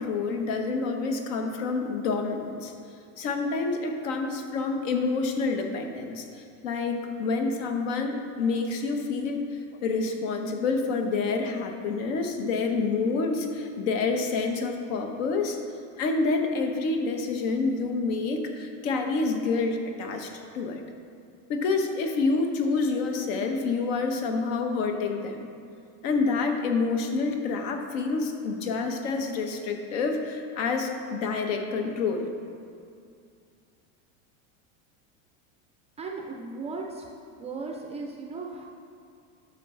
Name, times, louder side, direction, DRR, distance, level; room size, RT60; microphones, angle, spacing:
voice 1, 0.0-2.7 3.2-15.6 16.0-20.8 21.5-25.5 26.0-32.3, left 4 dB, 70° left, 4 dB, 1.2 m, -28 dB
voice 2, 36.0-37.1 37.4-38.6, right 3 dB, 15° right, 1 dB, 0.4 m, -36 dB
11.5 x 6.1 x 3.8 m, 2.4 s
supercardioid pair, 145°, 40 cm